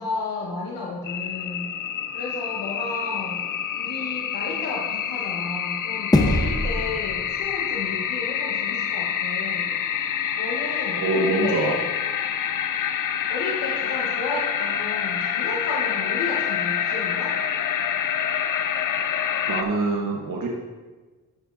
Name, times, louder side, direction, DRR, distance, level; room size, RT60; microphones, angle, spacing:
voice 1, 0.0-1.7 2.1-3.5 3.7-9.7 10.4-11.8 13.3-17.4, left 3 dB, 85° left, -3 dB, 1.3 m, -32 dB
sound 1, 1.0-19.6, left 9 dB, 65° left, 0.6 m, -27 dB
sound 2, 6.1-8.7, left 1 dB, 10° left, 0.9 m, -25 dB
voice 2, 11.0-11.8 18.8-18.9 19.5-20.5, right 2 dB, 65° right, -1 dB, 1.3 m, -24 dB
11.5 x 7.5 x 2.7 m, 1.3 s
cardioid pair, 90°, 35 cm